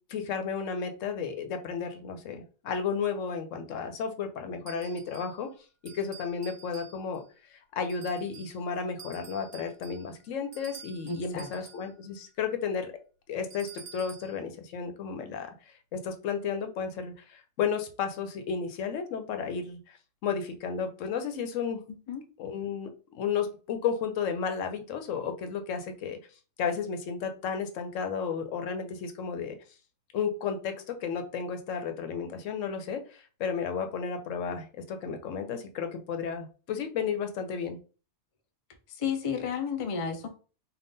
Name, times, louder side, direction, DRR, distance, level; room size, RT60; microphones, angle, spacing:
voice 1, 0.1-5.5 5.8-7.2 7.5-12.9 13.3-15.5 15.9-20.0 20.2-21.8 22.4-22.9 23.1-26.2 26.6-29.5 30.1-37.8, left 6 dB, 85° left, 1.0 m, -33 dB
sound 1, 4.7-5.4 5.8-7.3 7.9-8.6 9.0-11.9 13.5-14.4, right 6 dB, 50° right, 0.9 m, -50 dB
voice 2, 11.1-11.5 22.1-22.2 38.9-40.3, left 6 dB, 40° left, 0.5 m, -32 dB
3.6 x 2.5 x 3.9 m
omnidirectional pair, 1.3 m